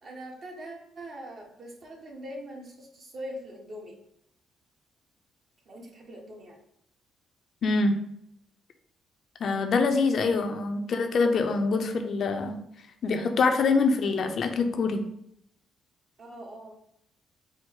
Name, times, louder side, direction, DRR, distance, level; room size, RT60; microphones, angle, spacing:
voice 1, 0.0-4.0 5.7-6.6 10.3-10.5 16.2-16.7, equal, 50° right, -1 dB, 1.2 m, -42 dB
voice 2, 7.6-7.9 9.4-12.6 13.0-15.0, left 4 dB, 60° left, 6 dB, 0.5 m, -25 dB
4.5 x 2.1 x 4.5 m, 0.73 s
cardioid pair, 90°, 0 cm